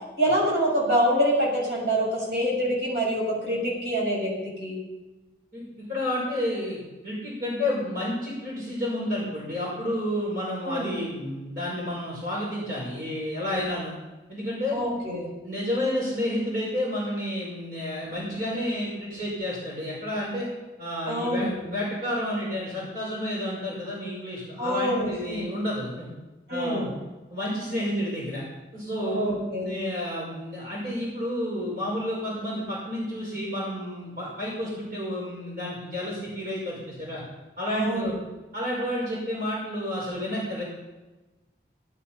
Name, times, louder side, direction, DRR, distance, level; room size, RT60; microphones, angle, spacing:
voice 1, 0.2-4.3 4.6-4.8 10.6-10.9 14.7-15.3 21.1-21.5 24.6-25.5 26.5-26.9 29.0-29.7 37.7-38.1, equal, 75° right, -3 dB, 6.7 m, -26 dB
voice 2, 5.9-13.9 14.3-14.8 15.4-20.5 20.8-26.1 26.5-26.9 27.3-28.4 28.7-37.2 37.6-38.1 38.5-40.6, left 1 dB, 55° right, -5 dB, 5.7 m, -30 dB
18.0 x 11.0 x 5.7 m, 1.1 s
head